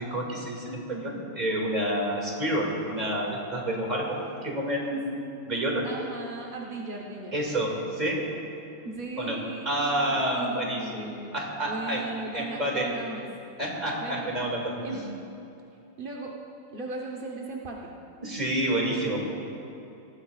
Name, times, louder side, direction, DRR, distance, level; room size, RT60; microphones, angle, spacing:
voice 1, 0.0-5.9 7.3-8.3 9.2-9.4 9.6-11.1 11.3-12.0 12.3-12.9 13.6-15.0 18.2-19.2, right 1 dB, 20° right, -2 dB, 2.2 m, -29 dB
voice 2, 5.8-7.4 8.8-11.3 11.6-13.3 14.0-14.3 14.8-15.0 16.0-16.3 16.7-17.9, right 3 dB, 45° right, -2 dB, 0.6 m, -37 dB
19.5 x 15.0 x 2.4 m, 2.9 s
omnidirectional pair, 2.4 m